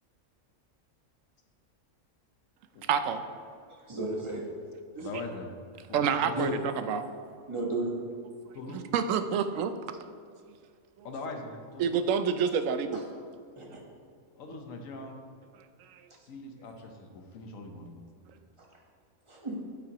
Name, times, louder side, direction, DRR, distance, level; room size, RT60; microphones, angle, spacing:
voice 1, 2.8-3.2 5.0-5.1 5.9-7.1 8.7-9.7 11.0-11.1 11.8-13.0 15.8-16.1, right 7 dB, 80° right, 10 dB, 0.9 m, -28 dB
voice 2, 3.9-4.4 5.0-5.1 6.3-6.5 7.5-8.0 13.6-13.8 19.3-19.6, right 2 dB, 25° right, -2 dB, 1.2 m, -33 dB
voice 3, 5.0-6.4 8.5-8.8 11.0-11.9 14.3-15.2 16.3-17.9, left 3 dB, 85° left, 3 dB, 1.3 m, -42 dB
8.6 x 8.2 x 2.9 m, 2.2 s
omnidirectional pair, 1.3 m